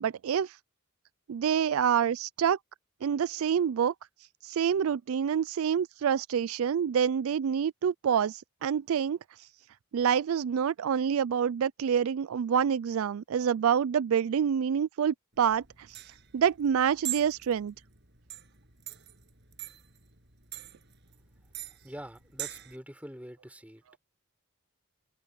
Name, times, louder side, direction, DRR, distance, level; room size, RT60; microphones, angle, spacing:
voice 1, 0.0-0.5 1.3-2.6 3.0-3.9 4.4-9.2 9.9-15.6 16.3-17.7, right 8 dB, 75° right, 0.3 m, -27 dB
sound 1, 15.4-22.8, right 14 dB, 50° right, 7.2 m, -42 dB
voice 2, 21.7-24.0, equal, 5° right, 5.5 m, -45 dB
head